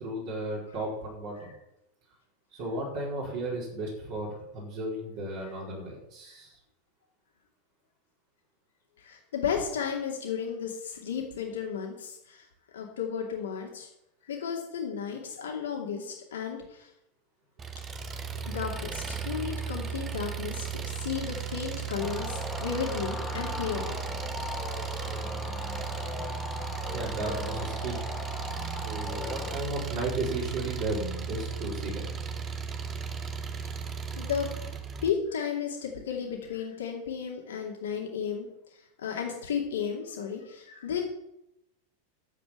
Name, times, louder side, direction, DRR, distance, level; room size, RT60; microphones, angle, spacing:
voice 1, 0.0-1.5 2.5-6.5 26.8-28.0 28.8-32.2, right 1 dB, 45° right, -5 dB, 4.9 m, -34 dB
voice 2, 9.0-12.4 12.7-13.9 14.3-16.9 18.4-24.0 34.2-34.5 35.0-38.5 39.0-41.0, left 7 dB, 60° left, 0 dB, 2.5 m, -33 dB
Engine, 17.6-35.1, right 7 dB, 20° right, 1.3 m, -35 dB
sound 1, 22.0-29.6, left 4 dB, 20° left, 2.4 m, -38 dB
11.5 x 7.9 x 7.6 m, 0.84 s
figure-of-eight pair, 90°, 0 cm